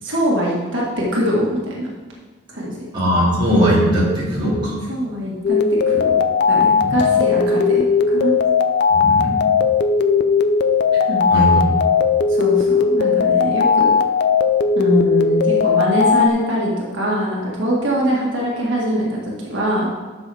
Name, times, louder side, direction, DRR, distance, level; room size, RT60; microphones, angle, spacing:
voice 1, 0.0-1.9 2.5-2.8 4.9-5.6 5.9-6.1 6.5-8.3 11.1-11.3 12.3-13.9 14.7-19.2 19.5-19.9, right 1 dB, 65° right, -4 dB, 1.7 m, -22 dB
voice 2, 2.9-4.7 6.8-7.0 8.9-9.3 11.3-11.6, equal, 25° right, -7 dB, 2.4 m, -18 dB
sound 1, 5.4-16.3, left 5 dB, 55° left, 0.5 m, -17 dB
11.0 x 6.4 x 3.4 m, 1.4 s
head